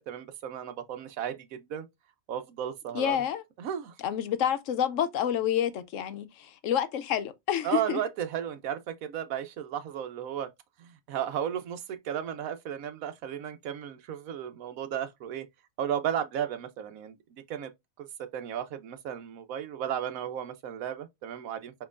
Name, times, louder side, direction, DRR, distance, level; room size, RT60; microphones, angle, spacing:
voice 1, 0.0-1.9 2.3-3.2 3.6-3.9 7.6-10.5 10.8-15.5 15.8-17.1 17.5-17.7 18.0-18.1 18.3-21.7, right 9 dB, 85° right, 1.2 m, -34 dB
voice 2, 2.9-3.4 4.0-8.0, left 10 dB, 75° left, 0.9 m, -28 dB
5.2 x 3.0 x 2.4 m
omnidirectional pair, 1.4 m